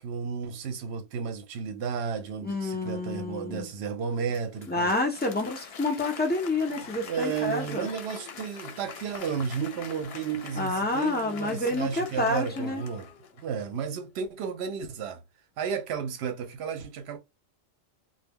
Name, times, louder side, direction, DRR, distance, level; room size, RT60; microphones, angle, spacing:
voice 1, 0.0-4.9 6.7-13.1 13.4-15.2 15.6-17.2, right 6 dB, 75° right, 0.8 m, -33 dB
voice 2, 2.4-3.7 4.7-7.9 10.6-12.8, left 2 dB, 15° left, 0.3 m, -28 dB
Applause, 4.1-13.6, left 7 dB, 70° left, 0.8 m, -44 dB
2.1 x 2.1 x 3.4 m
omnidirectional pair, 1.1 m